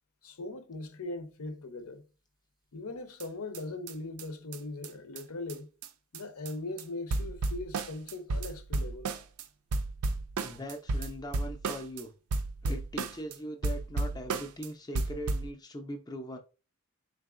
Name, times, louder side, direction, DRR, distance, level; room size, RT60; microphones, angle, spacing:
voice 1, 0.2-2.0 2.7-5.7 6.1-9.1, left 2 dB, 80° left, 0.7 m, -40 dB
sound 1, 3.2-3.3 3.5-3.6 3.9-4.0 4.2-4.3 4.5-4.6 4.8-4.9 5.2-5.3 5.5-5.6 5.8-5.9 6.1-6.5 6.8-6.9 7.1-9.4 9.7-12.0 12.3-13.3 13.6-14.7 14.9-15.5, right 3 dB, 85° right, 0.4 m, -33 dB
voice 2, 10.4-12.1 12.6-16.4, equal, 20° left, 0.4 m, -40 dB
3.9 x 3.5 x 2.4 m
head